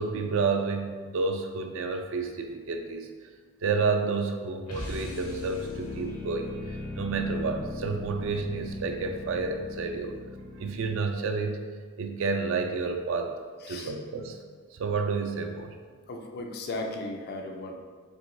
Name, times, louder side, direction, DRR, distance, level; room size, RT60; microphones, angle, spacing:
voice 1, 0.0-3.1 3.6-10.2 10.6-11.6 12.0-13.3 13.7-14.4 14.7-15.7, right 4 dB, 60° right, 5 dB, 0.4 m, -30 dB
sound 1, 4.7-11.1, left 2 dB, 80° left, 0.9 m, -39 dB
voice 2, 16.1-17.7, left 2 dB, 45° left, 2 dB, 0.4 m, -36 dB
4.6 x 3.5 x 2.5 m, 1.5 s
head